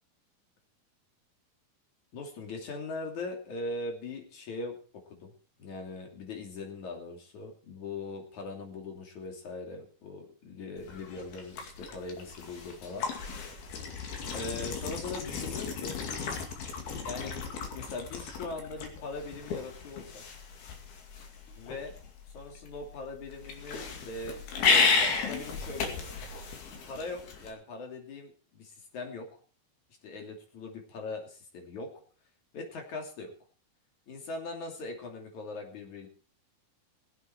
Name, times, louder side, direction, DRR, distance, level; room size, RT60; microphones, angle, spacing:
voice 1, 2.1-5.3 5.6-13.1 14.3-16.0 17.0-20.2 21.6-21.9 22.3-26.1 26.9-29.3 30.0-31.9 32.5-33.3 34.1-36.1, left 3 dB, 50° left, 2 dB, 4.0 m, -40 dB
sound 1, 10.8-27.5, left 4 dB, 75° left, 4.3 m, -33 dB
22.0 x 8.1 x 4.6 m, 0.39 s
omnidirectional pair, 4.4 m